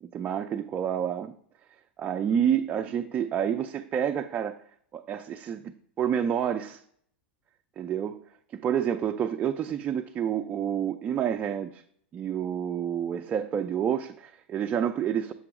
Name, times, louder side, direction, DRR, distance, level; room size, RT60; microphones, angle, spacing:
voice 1, 0.0-1.3 2.0-4.6 4.9-6.8 7.8-8.2 8.5-11.8 12.1-15.3, right 9 dB, 30° right, 5 dB, 0.5 m, -29 dB
7.0 x 2.8 x 4.8 m, 0.65 s
hypercardioid pair, 105°, 6 cm